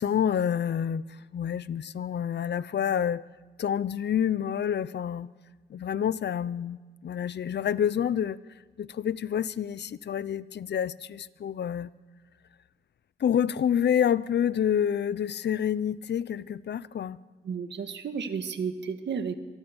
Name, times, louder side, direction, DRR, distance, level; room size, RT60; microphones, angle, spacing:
voice 1, 0.0-3.2 3.6-5.3 5.7-8.4 8.8-11.9 13.2-17.2, left 9 dB, 75° left, 18 dB, 0.7 m, -28 dB
voice 2, 17.5-19.4, right 6 dB, 85° right, 8 dB, 1.8 m, -32 dB
25.5 x 20.0 x 7.1 m, 1.5 s
cardioid pair, 75°, 18 cm